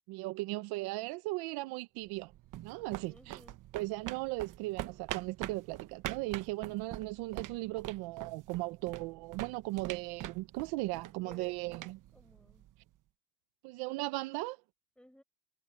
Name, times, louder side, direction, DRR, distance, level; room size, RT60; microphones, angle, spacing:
voice 1, 0.1-2.3 2.6-3.4 3.7-12.0 13.6-14.6, right 21 dB, 85° right, 0.9 m, -37 dB
sound 1, 2.1-12.9, right 14 dB, 55° right, 1.1 m, -45 dB
voice 2, 3.1-3.6 11.2-12.7 15.0-15.2, equal, 5° left, 5.6 m, -58 dB
supercardioid pair, 100°, 37 cm